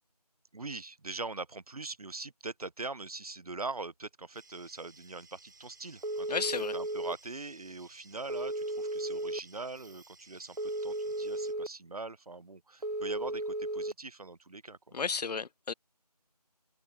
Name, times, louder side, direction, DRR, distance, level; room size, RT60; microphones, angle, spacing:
voice 1, 0.5-6.3 6.6-14.9, right 3 dB, 65° right, 0.8 m, -42 dB
sound 1, 4.3-11.5, right 3 dB, 30° right, 6.7 m, -58 dB
Telephone, 6.0-7.1 8.3-9.4 10.6-11.7 12.8-13.9, right 1 dB, 85° right, 1.1 m, -34 dB
voice 2, 6.3-6.7 14.9-15.7, left 5 dB, 75° left, 0.4 m, -33 dB
open air
figure-of-eight pair, 175°, 21 cm